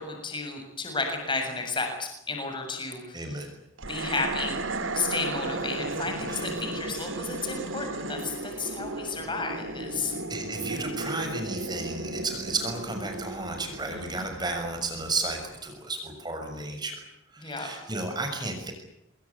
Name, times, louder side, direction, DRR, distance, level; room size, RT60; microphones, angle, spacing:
voice 1, 0.0-3.4 3.9-4.6 4.9-10.1 13.9-14.3 17.4-17.7, left 3 dB, 25° left, 4 dB, 7.2 m, -32 dB
voice 2, 3.1-3.5 6.3-6.5 10.1-17.0 17.3-18.7, right 2 dB, 20° right, 4 dB, 6.3 m, -33 dB
sound 1, 3.8-15.2, right 2 dB, 75° right, 3.2 m, -35 dB
28.0 x 23.0 x 8.5 m, 0.78 s
head